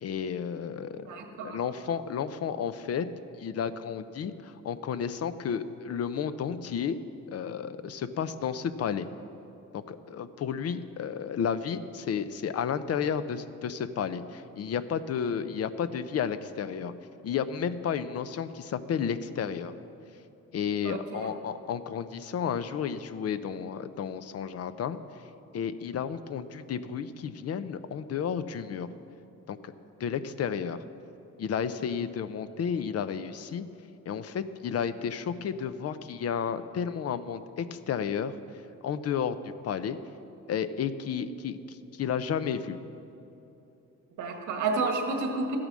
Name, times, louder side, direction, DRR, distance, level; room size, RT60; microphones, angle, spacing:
voice 1, 0.0-1.1 1.4-3.1 3.4-7.0 7.3-9.1 9.7-16.9 17.2-19.7 20.5-25.0 25.5-28.9 29.5-29.7 30.0-30.8 31.4-33.6 34.1-38.3 38.8-39.4 39.6-40.0 40.5-42.8, left 7 dB, 55° left, 12 dB, 0.6 m, -32 dB
voice 2, 1.1-1.6 20.8-21.3 44.2-45.6, right 3 dB, 80° right, 4 dB, 1.7 m, -31 dB
13.0 x 8.7 x 6.2 m, 2.9 s
cardioid pair, 90°, 30 cm